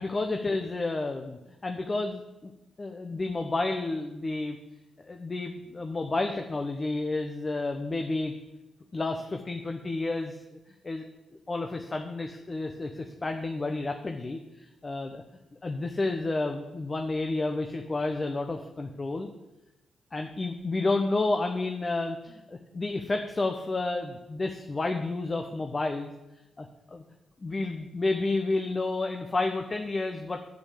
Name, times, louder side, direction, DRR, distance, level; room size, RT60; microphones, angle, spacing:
voice 1, 0.0-2.5 2.8-4.6 5.1-8.3 8.9-10.4 10.8-11.0 11.5-15.2 15.6-19.3 20.1-26.1 26.6-27.0 27.4-30.4, left 2 dB, 35° left, 4 dB, 1.0 m, -30 dB
8.6 x 6.6 x 7.7 m, 1.0 s
supercardioid pair, 45°, 0 cm